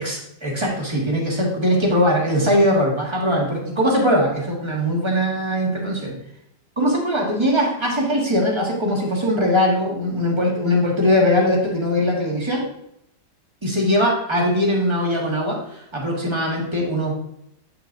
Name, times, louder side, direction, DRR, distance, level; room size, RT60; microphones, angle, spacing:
voice 1, 0.0-6.2 6.8-12.6 13.6-17.1, equal, 15° right, -2 dB, 1.5 m, -21 dB
8.2 x 6.0 x 2.6 m, 0.78 s
omnidirectional pair, 1.9 m